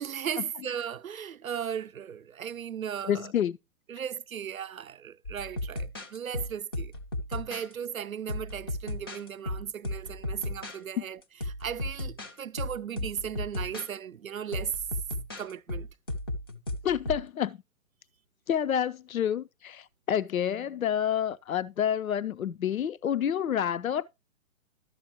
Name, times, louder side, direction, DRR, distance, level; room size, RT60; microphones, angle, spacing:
voice 1, 0.0-3.3 3.9-6.9 7.3-11.2 11.6-14.7 15.4-15.9, right 8 dB, 75° right, 0.7 m, -36 dB
voice 2, 3.0-3.6 16.8-17.6 18.5-24.0, left 9 dB, 75° left, 0.6 m, -28 dB
sound 1, 5.2-7.7 8.3-10.8 11.2-13.9 14.5-17.3, left 1 dB, 20° left, 0.4 m, -35 dB
12.0 x 7.4 x 2.9 m
figure-of-eight pair, 130°, 42 cm